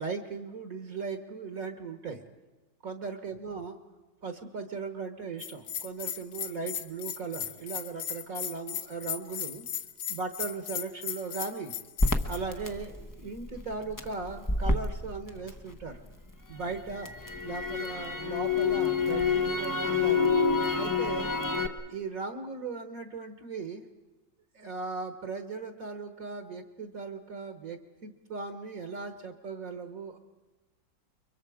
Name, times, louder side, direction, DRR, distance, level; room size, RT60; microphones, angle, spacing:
voice 1, 0.0-2.2 2.8-3.8 4.2-9.6 10.1-11.7 12.2-16.0 16.5-17.1 17.4-20.3 20.7-21.3 21.9-23.9 24.5-30.2, right 4 dB, 55° right, 7 dB, 1.5 m, -38 dB
Bell, 5.4-12.4, left 9 dB, 75° left, 1.6 m, -36 dB
Crackle, 12.0-16.1 16.5-21.7, left 4 dB, 20° left, 0.6 m, -28 dB
30.0 x 23.5 x 4.9 m, 1.1 s
omnidirectional pair, 1.9 m